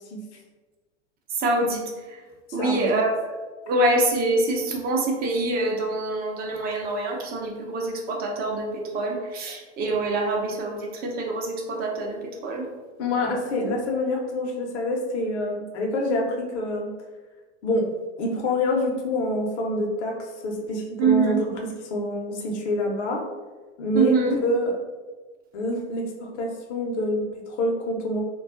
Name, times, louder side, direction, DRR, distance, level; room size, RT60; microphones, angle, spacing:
voice 1, 1.4-1.9 2.5-3.1 3.7-12.7 21.0-21.4 23.9-24.4, right 2 dB, 25° right, 1 dB, 0.6 m, -25 dB
voice 2, 2.6-3.0 13.0-16.9 17.6-17.9 18.2-21.4 21.6-23.2 23.8-24.7 25.5-28.2, left 1 dB, 70° left, 0 dB, 0.8 m, -26 dB
2.3 x 2.0 x 3.6 m, 1.3 s
hypercardioid pair, 105°, 35 cm